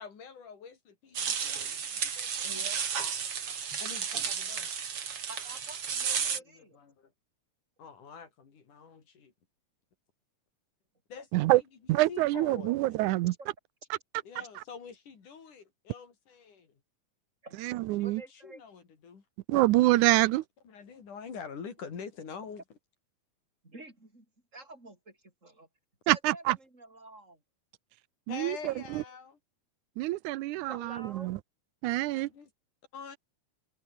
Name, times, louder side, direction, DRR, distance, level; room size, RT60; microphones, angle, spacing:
voice 1, 0.0-2.7 3.8-4.7 6.5-7.1 7.8-9.3 11.1-11.4 12.1-12.8 14.3-16.7 18.0-19.2 20.7-22.6 28.3-29.4 32.1-32.5 32.9-33.2, left 6 dB, 85° left, 5.4 m, -46 dB
sound 1, 1.2-6.4, right 7 dB, 50° right, 3.2 m, -33 dB
voice 2, 2.4-2.8 5.3-6.8 13.4-13.5 14.4-14.5 17.4-17.7 18.0-18.6 23.6-24.3 24.5-25.7 26.0-27.4 30.7-31.4, right 2 dB, 20° right, 8.3 m, -49 dB
voice 3, 11.9-13.3 14.6-14.7 17.6-18.2 19.5-20.4 26.1-26.6 28.3-29.0 30.0-31.4 31.8-32.3, right 18 dB, 90° right, 2.1 m, -26 dB
omnidirectional pair, 3.5 m